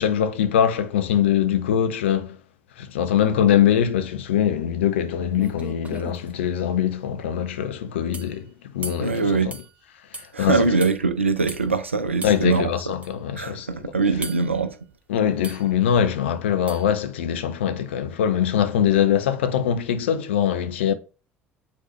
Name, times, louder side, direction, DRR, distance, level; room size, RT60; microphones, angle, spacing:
voice 1, 0.0-2.4 2.8-9.5 10.1-10.8 12.2-13.9 15.1-20.9, left 9 dB, 75° left, 0.7 m, -22 dB
sound 1, 5.0-5.1 5.4-6.3 8.1-8.4 8.8-9.1 9.5-9.7 10.1-10.3 10.8-11.0 11.5-11.6 12.2-12.4 13.0-13.1 14.2-14.5 15.4-15.7 16.7-16.9, right 2 dB, 20° right, 1.6 m, -37 dB
voice 2, 9.0-9.5 10.3-12.7 13.4-14.8, right 4 dB, 90° right, 0.6 m, -22 dB
8.4 x 3.8 x 3.2 m
figure-of-eight pair, 60°, 6 cm